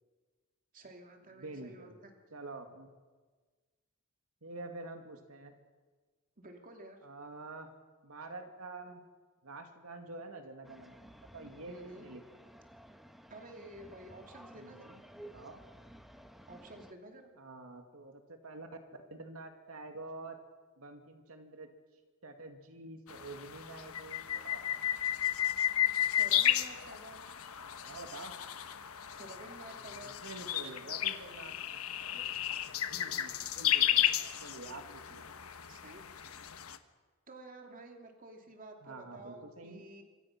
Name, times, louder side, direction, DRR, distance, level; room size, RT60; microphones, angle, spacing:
voice 1, 0.7-2.1 6.4-7.0 11.7-12.0 13.3-15.0 16.5-17.3 26.2-27.3 29.2-30.2 35.7-36.0 37.3-40.0, right 2 dB, 40° right, 3 dB, 2.7 m, -51 dB
voice 2, 1.4-2.9 4.4-5.5 7.0-7.7 8.0-9.0 9.4-12.2 14.5-15.6 17.4-18.7 19.1-20.4 20.8-21.7 22.2-24.6 27.8-28.3 30.0-31.8 32.1-32.2 32.9-35.3 38.8-39.8, right 2 dB, 85° right, 5 dB, 2.4 m, -48 dB
sound 1, 10.6-16.9, equal, ahead, 1.2 m, -54 dB
sound 2, 23.1-36.8, left 11 dB, 90° left, 1.3 m, -33 dB
26.5 x 25.0 x 6.1 m, 1.4 s
head